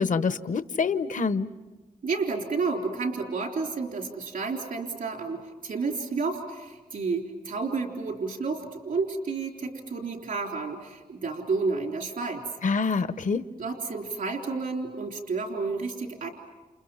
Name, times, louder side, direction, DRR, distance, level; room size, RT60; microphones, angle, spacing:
voice 1, 0.0-1.5 12.6-13.5, left 5 dB, 60° left, 12 dB, 0.9 m, -26 dB
voice 2, 2.0-12.4 13.6-16.3, right 4 dB, 70° right, 2 dB, 3.7 m, -31 dB
30.0 x 29.0 x 5.7 m, 1.2 s
cardioid pair, 60°, 15 cm